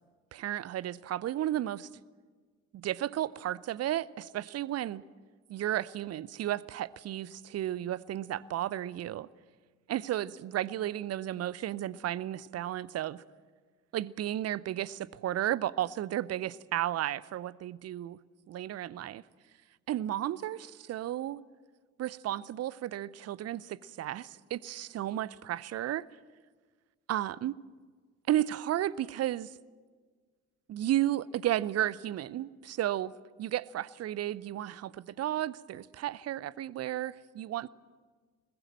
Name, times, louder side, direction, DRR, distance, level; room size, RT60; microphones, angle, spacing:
voice 1, 0.3-1.9 2.7-5.0 5.5-9.3 9.9-13.2 13.9-18.2 18.5-19.2 19.9-21.5 22.0-26.1 27.1-27.6 28.3-29.5 30.7-33.1 33.4-37.7, right 13 dB, 40° right, 0.7 m, -33 dB
21.0 x 21.0 x 7.7 m
figure-of-eight pair, 45°, 41 cm